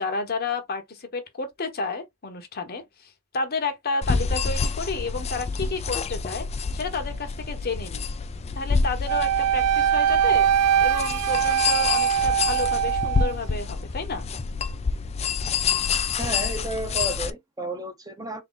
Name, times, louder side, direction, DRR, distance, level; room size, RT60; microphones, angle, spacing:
voice 1, 0.0-6.5 6.7-8.1 8.5-10.5 10.8-14.3, left 3 dB, 45° left, 1.0 m, -31 dB
sound 1, 4.0-17.3, left 5 dB, 30° left, 0.4 m, -28 dB
Wind instrument woodwind instrument, 9.1-13.3, right 9 dB, 80° right, 0.3 m, -22 dB
voice 2, 16.2-18.4, right 1 dB, 15° right, 0.8 m, -32 dB
3.7 x 2.8 x 3.8 m
head